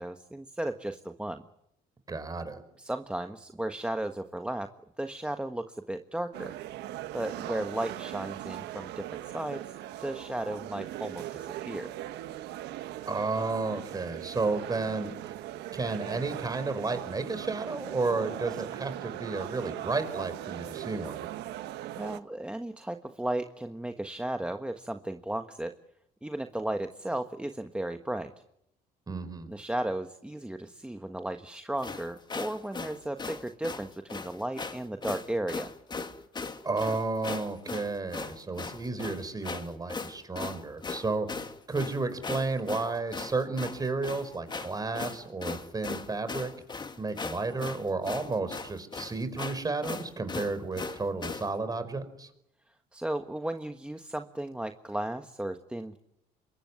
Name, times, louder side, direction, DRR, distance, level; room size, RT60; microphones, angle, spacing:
voice 1, 0.0-1.4 2.8-4.7 5.0-6.5 7.1-11.9 22.0-25.8 26.2-28.3 29.5-35.7 52.9-56.0, right 1 dB, 5° right, 6 dB, 1.4 m, -35 dB
voice 2, 2.1-2.6 13.1-15.3 15.7-21.2 29.1-29.5 36.6-41.3 41.7-46.5 47.0-52.3, right 3 dB, 20° right, 11 dB, 4.9 m, -32 dB
sound 1, 6.3-22.2, right 13 dB, 85° right, 1.3 m, -39 dB
sound 2, 31.8-51.5, left 4 dB, 25° left, 2.2 m, -38 dB
27.0 x 23.0 x 9.7 m, 0.81 s
cardioid pair, 110°, 17 cm